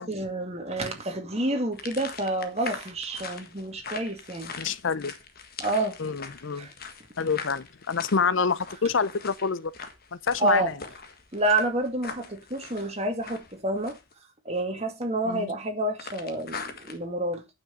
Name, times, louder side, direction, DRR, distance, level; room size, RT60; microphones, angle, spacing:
voice 1, 0.0-4.5 5.6-6.0 6.6-6.7 10.4-10.7 11.3-14.0 14.5-17.4, right 1 dB, 30° right, 2.3 m, -28 dB
sound 1, 1.7-14.1 16.0-17.0, left 5 dB, 45° left, 1.6 m, -42 dB
voice 2, 4.6-5.1 6.0-6.7 7.2-9.7 10.2-10.7 15.2-15.5, left 5 dB, 60° left, 0.6 m, -27 dB
9.0 x 6.2 x 7.0 m
head